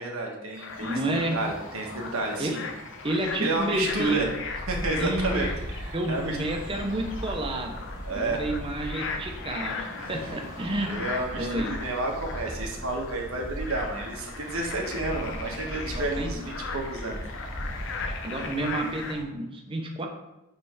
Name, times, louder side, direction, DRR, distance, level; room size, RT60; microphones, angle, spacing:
voice 1, 0.0-1.0 1.3-2.6 3.4-4.3 4.7-6.4 8.0-8.4 10.0-10.1 10.9-16.4 16.7-17.2, right 2 dB, 85° right, 0 dB, 1.2 m, -31 dB
sound 1, 0.5-19.1, left 5 dB, 60° left, 0.7 m, -39 dB
sound 2, 0.7-19.2, equal, 85° left, 2.4 m, -38 dB
voice 2, 0.8-1.4 2.0-2.1 2.4-2.6 3.0-4.4 5.0-5.4 5.9-7.8 8.1-10.9 11.3-11.7 15.9-16.5 18.1-20.1, right 1 dB, 25° right, 2 dB, 0.8 m, -30 dB
7.0 x 3.4 x 4.8 m, 0.92 s
head